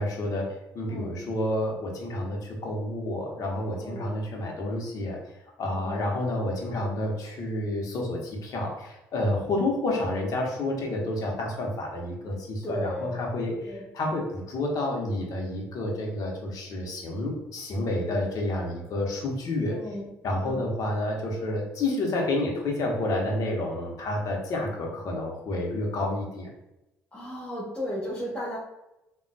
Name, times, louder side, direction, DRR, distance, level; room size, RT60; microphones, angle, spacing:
voice 1, 0.0-5.2 5.6-19.8 20.2-26.5, left 1 dB, 60° left, 0 dB, 0.9 m, -29 dB
voice 2, 0.9-1.2 3.8-4.2 5.7-6.1 12.6-13.1 13.6-13.8 19.7-20.1 20.4-20.6 27.1-28.6, equal, 20° left, -7 dB, 1.1 m, -35 dB
3.7 x 2.3 x 2.2 m, 0.93 s
hypercardioid pair, 60°, 7 cm